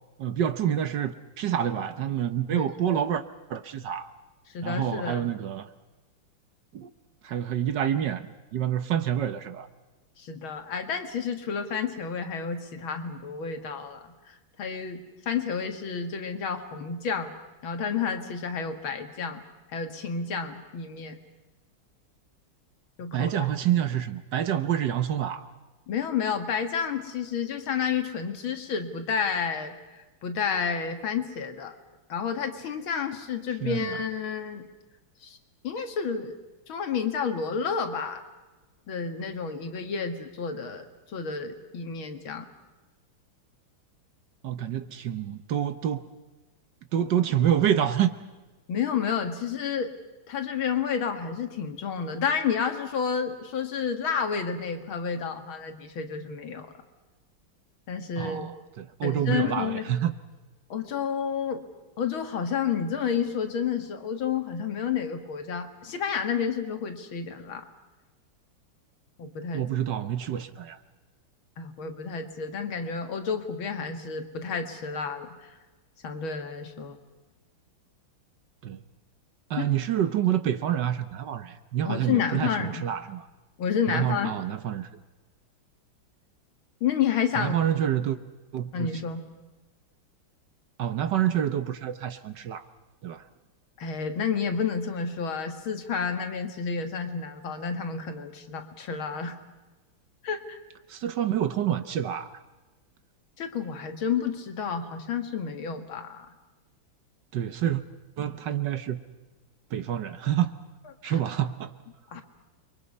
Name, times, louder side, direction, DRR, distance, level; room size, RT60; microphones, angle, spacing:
voice 1, 0.2-3.2 3.5-4.1 4.6-5.7 6.7-6.9 7.2-9.7 23.1-25.4 33.6-34.0 44.4-46.1 46.9-48.1 58.2-60.1 69.5-70.8 78.6-78.8 79.5-83.2 83.9-84.9 87.4-88.2 88.5-88.9 90.8-92.6 93.0-93.2 100.9-102.3 107.3-107.8 108.2-109.0 109.7-110.6 111.0-111.7, right 10 dB, 60° right, 1.5 m, -27 dB
voice 2, 2.5-3.0 4.5-5.3 10.2-17.3 17.6-19.4 19.7-21.2 23.0-23.5 25.9-31.8 32.1-34.7 35.2-35.4 35.6-36.3 36.7-38.2 38.9-42.5 48.7-49.9 50.3-56.7 57.9-58.5 59.0-59.9 60.7-61.6 62.0-67.6 69.2-69.6 71.6-75.6 76.0-77.0 79.6-79.7 81.9-82.9 83.6-84.4 86.8-87.5 88.7-89.2 93.8-99.4 100.2-100.6 103.4-106.3 111.0-111.2 112.1-112.2, left 6 dB, 75° left, 2.5 m, -30 dB
29.5 x 23.5 x 5.4 m
omnidirectional pair, 2.3 m